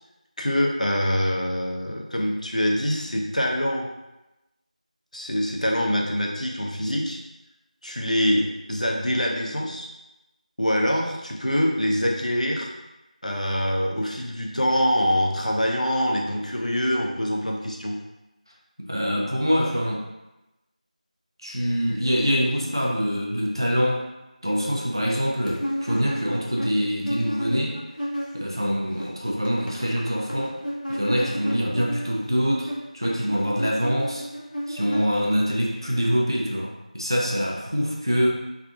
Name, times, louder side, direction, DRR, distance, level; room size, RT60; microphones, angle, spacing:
voice 1, 0.4-3.9 5.1-7.2 7.8-9.9 10.6-12.7 13.2-18.0, equal, 60° left, 0 dB, 0.6 m, -24 dB
voice 2, 18.8-20.0 21.4-24.1 24.4-27.8 28.3-30.6 30.9-34.3 34.7-38.3, equal, 35° right, -2 dB, 0.5 m, -25 dB
sound 1, 25.5-28.6 28.9-35.6, equal, 85° left, 1.1 m, -32 dB
3.5 x 2.2 x 3.5 m, 0.97 s
figure-of-eight pair, 175°, 4 cm